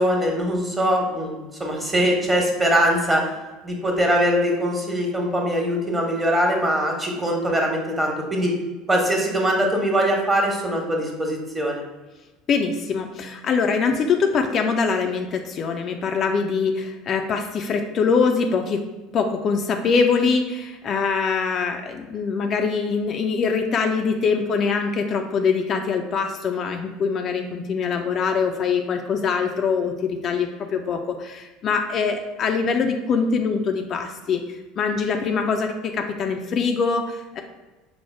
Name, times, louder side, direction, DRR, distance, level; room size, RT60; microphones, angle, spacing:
voice 1, 0.0-3.2 3.6-8.6 8.9-11.8, equal, 20° right, 0 dB, 1.2 m, -22 dB
voice 2, 12.5-18.8 19.1-37.4, left 5 dB, 45° left, 4 dB, 0.4 m, -23 dB
4.8 x 2.1 x 4.4 m, 1.1 s
hypercardioid pair, 70°, 0 cm